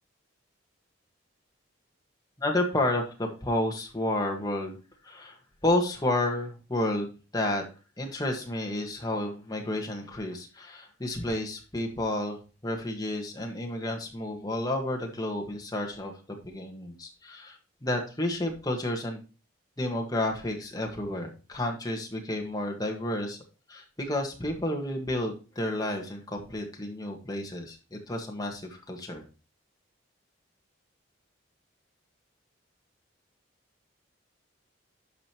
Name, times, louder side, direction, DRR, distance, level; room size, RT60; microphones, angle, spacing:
voice 1, 2.4-4.8 5.0-5.4 5.6-7.6 8.0-19.2 19.8-23.4 23.7-29.2, left 1 dB, 20° left, 1 dB, 1.5 m, -31 dB
11.5 x 5.1 x 3.0 m, 0.34 s
head